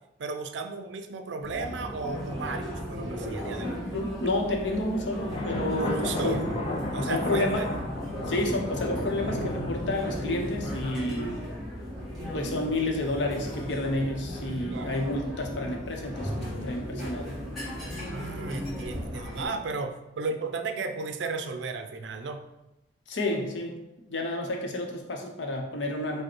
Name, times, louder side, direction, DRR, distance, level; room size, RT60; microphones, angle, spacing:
voice 1, 0.2-3.8 5.8-6.5 6.9-7.7 14.7-15.0 18.1-22.4, right 3 dB, 75° right, 7 dB, 0.4 m, -34 dB
sound 1, 1.4-19.5, equal, ahead, 1.5 m, -36 dB
voice 2, 3.9-6.4 7.1-7.7 8.3-11.4 12.3-17.3 23.1-23.8 24.1-26.2, left 2 dB, 80° left, 1 dB, 0.8 m, -30 dB
sound 2, 5.3-11.0, left 1 dB, 30° left, 0.6 m, -34 dB
5.0 x 2.2 x 4.4 m, 0.93 s
head